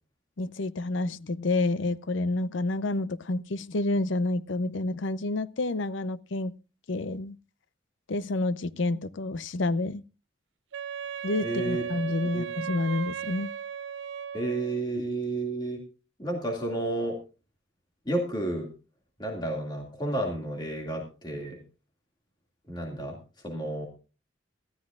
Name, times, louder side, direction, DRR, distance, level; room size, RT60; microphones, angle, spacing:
voice 1, 0.4-6.5 6.9-7.4 8.1-10.0 11.2-13.5, left 2 dB, 70° left, 0.6 m, -29 dB
Wind instrument woodwind instrument, 10.7-14.8, right 8 dB, 70° right, 0.6 m, -36 dB
voice 2, 11.4-11.8 12.3-12.5 14.3-15.8 16.2-17.2 18.1-18.7 19.2-21.6 22.7-23.2 23.4-23.9, right 1 dB, 20° left, 2.2 m, -31 dB
19.0 x 13.5 x 2.4 m
head